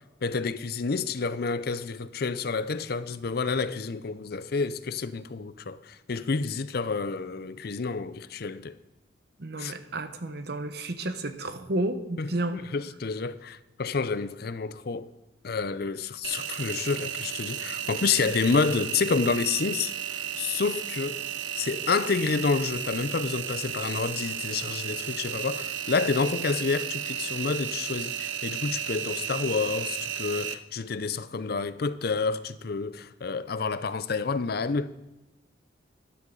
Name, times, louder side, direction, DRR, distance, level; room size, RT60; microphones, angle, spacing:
voice 1, 0.2-8.8 9.6-9.8 12.2-15.1 15.4-21.2 21.6-34.9, left 4 dB, 55° left, 0.5 m, -29 dB
voice 2, 9.4-12.6, right 2 dB, 60° right, 1.0 m, -31 dB
Engine, 16.2-30.5, right 9 dB, 80° right, 0.8 m, -34 dB
13.0 x 11.0 x 3.9 m
head